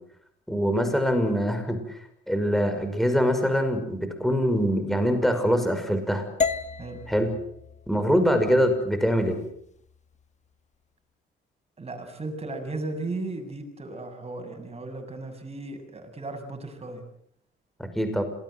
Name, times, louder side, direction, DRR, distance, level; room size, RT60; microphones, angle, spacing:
voice 1, 0.5-1.8 2.3-6.3 7.1-7.3 7.9-9.4 18.0-18.2, equal, ahead, 7 dB, 5.9 m, -23 dB
sound 1, 6.4-10.5, left 5 dB, 35° left, 1.4 m, -34 dB
voice 2, 11.8-17.0, right 2 dB, 30° right, 5 dB, 7.5 m, -35 dB
27.0 x 20.5 x 8.0 m, 0.69 s
cardioid pair, 90°, 20 cm